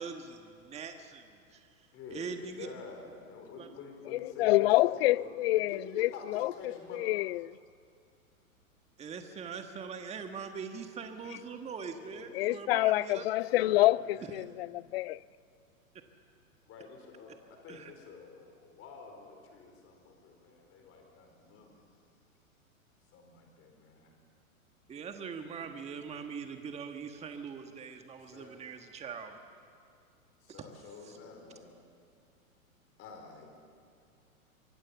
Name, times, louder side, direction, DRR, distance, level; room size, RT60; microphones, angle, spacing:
voice 1, 0.0-1.7 2.1-2.7 3.6-3.7 9.0-13.2 17.7-17.9 24.9-29.4 30.5-30.6 31.0-31.2, right 6 dB, 15° right, 1.4 m, -42 dB
voice 2, 1.9-7.1 12.0-12.3 13.4-14.3 16.7-21.8 23.1-24.2 28.3-28.6 30.4-31.7 33.0-33.5, left 5 dB, 30° left, 4.4 m, -48 dB
voice 3, 4.1-6.5 6.9-7.5 12.3-15.2, left 17 dB, 45° left, 0.5 m, -27 dB
24.5 x 23.5 x 7.2 m
hypercardioid pair, 120°, 43 cm